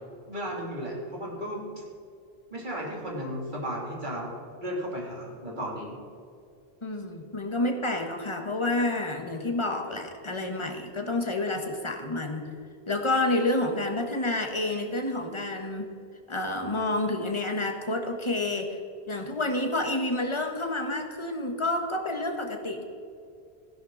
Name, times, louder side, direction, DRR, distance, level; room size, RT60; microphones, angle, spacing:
voice 1, 0.3-1.6 2.5-4.3 4.6-5.9, equal, 45° right, -3 dB, 3.2 m, -34 dB
voice 2, 6.8-12.5 12.9-15.9 16.3-18.8 19.1-22.8, left 2 dB, 25° left, 4 dB, 1.4 m, -29 dB
16.5 x 11.0 x 4.0 m, 2.5 s
omnidirectional pair, 1.1 m